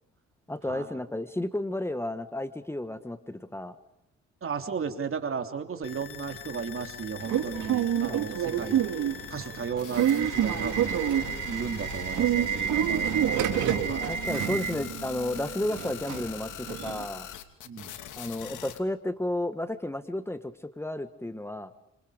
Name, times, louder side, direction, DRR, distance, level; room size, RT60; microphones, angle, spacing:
voice 1, 0.5-3.8 8.1-8.3 10.5-10.6 13.6-13.8 14.0-17.3 18.1-21.7, left 1 dB, 10° left, 10 dB, 1.4 m, -32 dB
voice 2, 4.4-8.9 9.3-14.1 17.6-18.0, right 6 dB, 45° right, 6 dB, 3.4 m, -35 dB
sound 1, 5.8-18.8, left 9 dB, 85° left, 2.9 m, -42 dB
Subway metro underground / Alarm, 7.2-17.0, right 9 dB, 75° right, 2.9 m, -28 dB
30.0 x 27.0 x 5.1 m, 0.85 s
cardioid pair, 90°, 30 cm